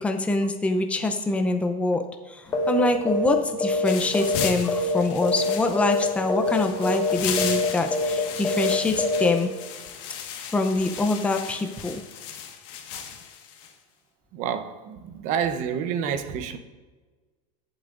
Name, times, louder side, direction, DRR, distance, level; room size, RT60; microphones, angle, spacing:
voice 1, 0.0-9.5 10.5-12.0, left 2 dB, 5° left, 0.6 m, -25 dB
sound 1, 2.5-2.8 3.1-3.3 3.6-5.0 5.2-5.5 5.8-6.0 6.3-6.6 6.8-7.1 7.4-7.7 7.9-8.2 8.4-8.7 9.0-9.3, left 2 dB, 25° left, 1.7 m, -25 dB
sound 2, 3.9-13.7, left 8 dB, 60° left, 1.6 m, -36 dB
voice 2, 14.3-16.6, right 7 dB, 45° right, 0.9 m, -29 dB
21.0 x 8.0 x 2.6 m
supercardioid pair, 150°, 17 cm